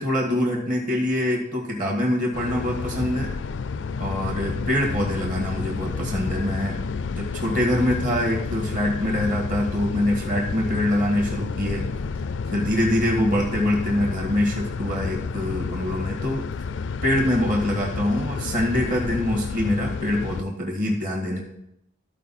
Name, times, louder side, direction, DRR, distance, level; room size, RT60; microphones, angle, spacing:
voice 1, 0.0-3.3 4.0-6.8 7.1-11.8 12.5-16.5 17.0-21.4, left 1 dB, 45° right, 0 dB, 1.8 m, -24 dB
sound 1, 2.3-20.4, left 4 dB, 75° left, 0.4 m, -30 dB
13.5 x 4.6 x 4.2 m, 0.77 s
head